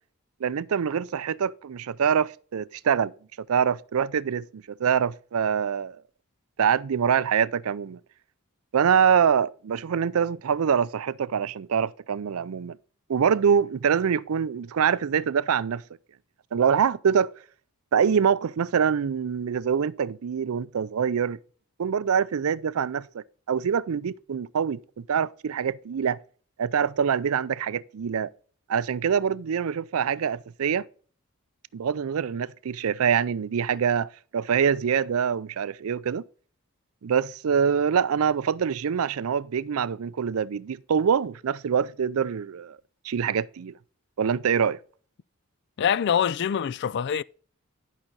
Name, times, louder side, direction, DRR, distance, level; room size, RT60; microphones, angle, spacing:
voice 1, 0.4-3.1 3.5-6.0 6.6-8.0 8.7-12.8 13.1-15.8 16.5-17.3 17.9-21.4 21.8-26.2 26.6-28.3 28.7-30.9 31.7-36.2 37.0-42.8 43.0-43.7 44.2-44.8, right 7 dB, 75° right, 0.4 m, -25 dB
voice 2, 45.8-47.2, left 8 dB, 50° left, 0.3 m, -24 dB
11.5 x 5.8 x 3.9 m
head